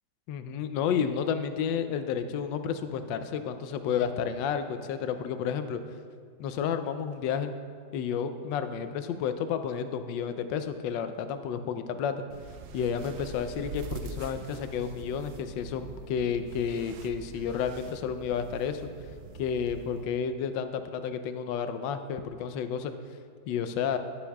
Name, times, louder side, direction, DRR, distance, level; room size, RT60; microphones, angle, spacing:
voice 1, 0.3-5.8 6.4-7.5 7.9-12.2 12.7-18.8 19.4-22.9 23.5-24.0, left 7 dB, 75° left, 9 dB, 1.2 m, -31 dB
sound 1, 12.3-20.0, right 4 dB, 85° right, 1.4 m, -44 dB
16.5 x 7.1 x 2.3 m, 2.1 s
omnidirectional pair, 2.2 m